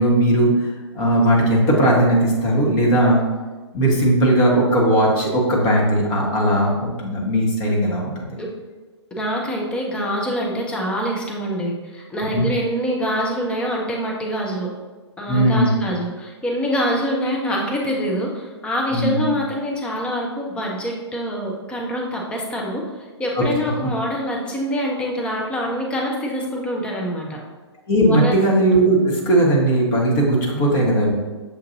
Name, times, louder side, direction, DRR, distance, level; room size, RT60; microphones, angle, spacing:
voice 1, 0.0-3.2 3.7-8.4 12.3-12.5 15.3-15.8 18.9-19.2 23.4-23.5 27.9-31.1, right 1 dB, 25° left, -2 dB, 1.1 m, -18 dB
voice 2, 9.2-14.7 15.2-27.4 28.1-28.3, equal, 5° left, -1 dB, 0.6 m, -25 dB
7.0 x 2.5 x 2.7 m, 1.3 s
figure-of-eight pair, 125°, 15 cm